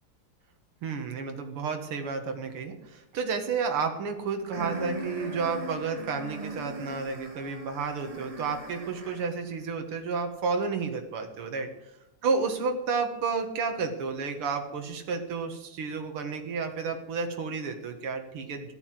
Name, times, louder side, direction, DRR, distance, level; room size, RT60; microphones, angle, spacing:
voice 1, 0.8-11.7 12.2-18.7, right 5 dB, 85° right, 5 dB, 2.5 m, -31 dB
sound 1, 4.5-9.4, right 1 dB, 20° right, 1.2 m, -39 dB
14.5 x 9.0 x 7.7 m, 0.90 s
omnidirectional pair, 2.4 m